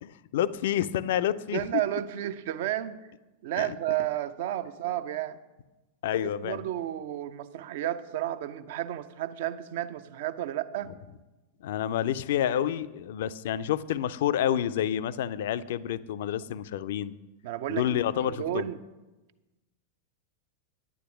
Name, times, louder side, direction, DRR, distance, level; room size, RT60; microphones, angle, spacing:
voice 1, 0.0-1.7 3.6-3.8 6.0-6.6 11.6-17.1 17.7-18.7, left 10 dB, 55° left, 16 dB, 0.4 m, -29 dB
voice 2, 1.5-3.0 3.4-5.4 6.1-10.9 17.4-18.8, right 13 dB, 55° right, 13 dB, 0.6 m, -32 dB
9.8 x 9.4 x 5.8 m, 1.1 s
figure-of-eight pair, 90°, 0 cm